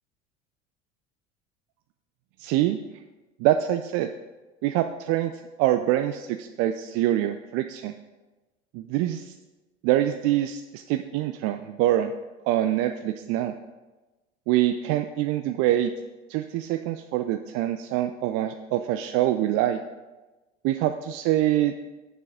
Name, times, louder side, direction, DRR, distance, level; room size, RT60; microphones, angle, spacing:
voice 1, 2.4-2.8 3.4-4.1 4.6-5.3 5.6-7.9 8.7-9.3 9.8-12.1 12.5-13.5 14.5-15.9 16.3-19.8 20.6-21.7, right 13 dB, 45° right, 8 dB, 0.4 m, -25 dB
6.9 x 6.7 x 4.9 m, 1.1 s
figure-of-eight pair, 70°, 34 cm